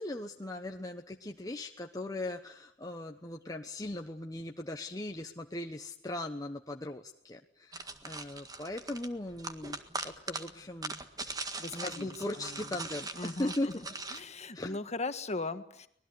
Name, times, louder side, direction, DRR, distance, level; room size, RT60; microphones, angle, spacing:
voice 1, 0.0-11.0 11.7-13.9 14.5-14.8, left 1 dB, 20° left, 3 dB, 1.0 m, -39 dB
sound 1, 7.7-14.2, right 3 dB, 20° right, 1.7 m, -41 dB
voice 2, 11.6-12.6 13.1-13.7 14.1-15.9, left 3 dB, 35° left, 10 dB, 1.6 m, -38 dB
25.0 x 19.5 x 9.7 m, 0.69 s
head